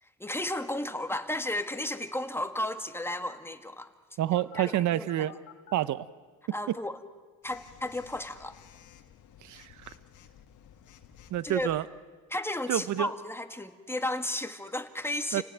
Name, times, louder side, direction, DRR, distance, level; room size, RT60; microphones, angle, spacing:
voice 1, 0.0-3.9 4.5-5.4 6.5-7.0 7.4-8.6 11.4-11.8 12.3-15.4, left 1 dB, 10° left, 7 dB, 1.9 m, -34 dB
voice 2, 4.2-5.3 5.7-6.1 9.4-9.9 11.3-11.9 12.7-13.1 15.3-15.4, right 13 dB, 70° right, 17 dB, 0.8 m, -28 dB
Telephone, 4.4-5.7 7.4-11.8, left 10 dB, 80° left, 1.9 m, -53 dB
30.0 x 18.0 x 9.0 m, 1.5 s
cardioid pair, 90°, 30 cm